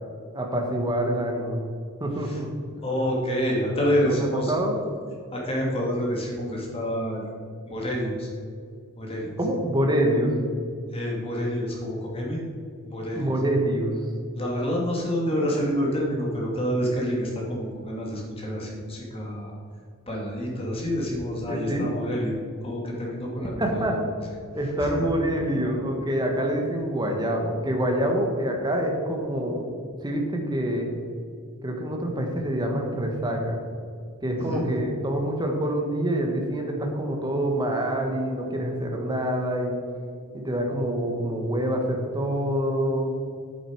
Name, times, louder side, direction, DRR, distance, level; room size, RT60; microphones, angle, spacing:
voice 1, 0.3-1.6 2.0-2.5 4.0-4.1 4.5-4.8 9.4-10.3 13.1-13.9 21.5-21.9 23.6-23.9 24.5-29.6 30.0-30.9 31.6-33.6 34.2-39.8 40.3-43.1, right 1 dB, 20° right, 2 dB, 1.4 m, -26 dB
voice 2, 2.8-4.5 5.3-7.2 7.6-8.3 9.0-9.3 10.9-12.4 12.8-13.3 14.3-19.5 20.1-24.1 24.8-25.1 34.4-34.6, equal, 25° left, -2 dB, 2.4 m, -28 dB
9.1 x 7.8 x 4.8 m, 2.3 s
head